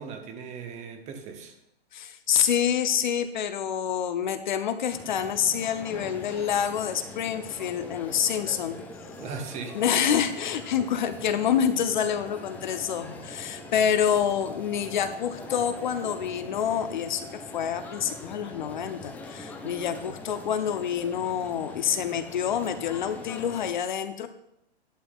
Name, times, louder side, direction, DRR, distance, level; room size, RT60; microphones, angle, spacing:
voice 1, 0.0-1.6 9.2-9.8, right 6 dB, 20° right, 5 dB, 1.1 m, -38 dB
voice 2, 1.9-8.8 9.7-24.3, left 8 dB, 45° left, 9 dB, 0.8 m, -27 dB
sound 1, 4.9-23.7, left 3 dB, 5° left, 0.5 m, -43 dB
sound 2, 6.4-23.3, right 3 dB, 80° right, 1.1 m, -49 dB
13.5 x 11.0 x 2.4 m, 0.80 s
figure-of-eight pair, 120°, 32 cm